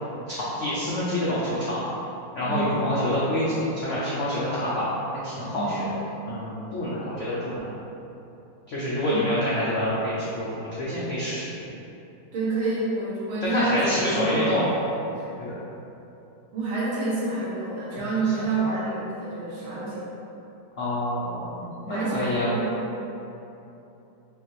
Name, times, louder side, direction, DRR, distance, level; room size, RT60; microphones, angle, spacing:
voice 1, 0.3-1.8 2.3-4.9 5.2-5.9 6.3-7.6 8.7-11.5 13.4-14.7 15.4-15.6 18.2-18.5 20.8-21.5 21.8-22.5, left 1 dB, 85° left, -9 dB, 0.6 m, -27 dB
voice 2, 2.4-2.8 5.5-5.9 9.1-9.4 12.3-13.8 14.1-14.5 15.1-15.2 16.5-20.1 21.6-22.7, right 3 dB, 80° right, -9 dB, 2.0 m, -28 dB
5.1 x 2.8 x 3.1 m, 2.9 s
omnidirectional pair, 2.2 m